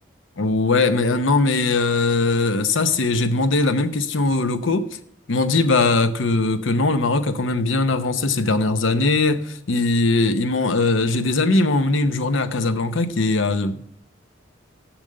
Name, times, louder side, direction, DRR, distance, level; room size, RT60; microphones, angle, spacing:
voice 1, 0.4-4.9 5.3-14.0, left 3 dB, 80° left, 0.8 m, -20 dB
7.1 x 6.7 x 7.5 m
head